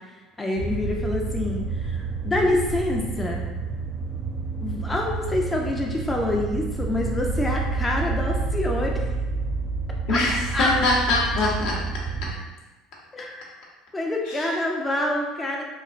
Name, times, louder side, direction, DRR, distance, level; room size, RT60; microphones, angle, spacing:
voice 1, 0.4-3.4 4.6-9.0 10.1-10.2 10.5-10.7 13.1-13.4 13.9-15.7, left 1 dB, 15° left, 0 dB, 0.4 m, -26 dB
sound 1, 0.6-12.3, right 4 dB, 60° right, 0.5 m, -29 dB
voice 2, 10.1-11.8 12.2-12.3 14.3-14.6, left 2 dB, 70° left, -4 dB, 0.7 m, -23 dB
3.1 x 2.3 x 2.4 m, 1.2 s
hypercardioid pair, 80°, 0 cm